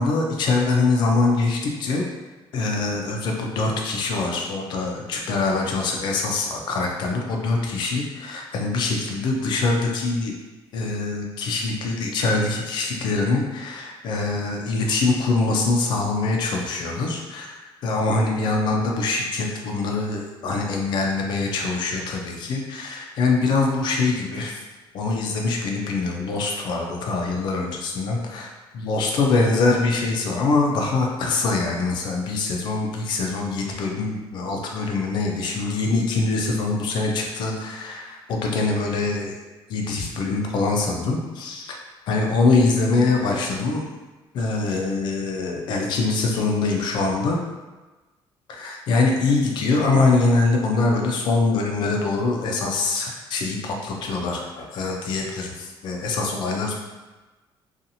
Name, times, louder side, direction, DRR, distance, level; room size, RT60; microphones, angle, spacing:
voice 1, 0.0-2.0 2.5-10.3 10.7-24.6 24.9-28.5 28.7-39.3 39.7-41.8 42.1-43.8 44.3-47.4 48.5-56.7, left 3 dB, 55° left, 1 dB, 0.4 m, -23 dB
2.7 x 2.4 x 2.6 m, 1.2 s
cardioid pair, 180°, 9 cm